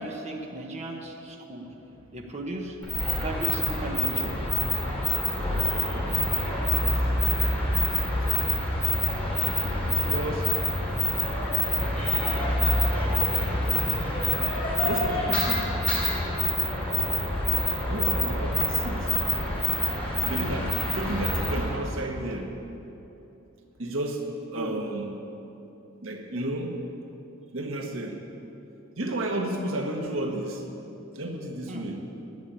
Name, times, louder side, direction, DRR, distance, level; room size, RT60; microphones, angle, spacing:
voice 1, 0.0-1.7 2.1-2.8 3.1-4.5 24.5-24.8 31.7-31.9, right 2 dB, 35° right, 0 dB, 1.3 m, -36 dB
sound 1, 2.8-21.7, left 1 dB, 5° left, 3.1 m, -26 dB
voice 2, 5.7-6.3 6.9-7.5 7.9-8.9 9.8-10.5 14.8-15.7 17.9-19.1 20.2-22.5 23.8-24.2 24.5-25.1 26.0-26.8 27.5-28.2 29.0-30.6 31.1-32.0, right 1 dB, 90° right, 2 dB, 1.5 m, -33 dB
11.0 x 10.5 x 8.5 m, 3.0 s
head